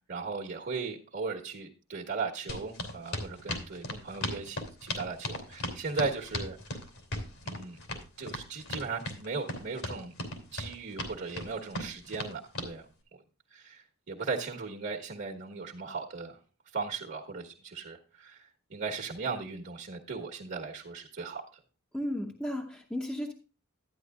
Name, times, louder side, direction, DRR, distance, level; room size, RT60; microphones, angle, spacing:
voice 1, 0.1-6.6 7.4-7.8 8.2-10.1 10.5-12.8 13.5-16.4 16.7-21.4, right 4 dB, 55° right, -2 dB, 1.3 m, -37 dB
sound 1, 2.5-12.7, left 1 dB, 75° left, 3.0 m, -37 dB
voice 2, 21.9-23.3, left 1 dB, 5° left, 1 dB, 0.8 m, -34 dB
12.5 x 9.9 x 2.4 m, 0.34 s
head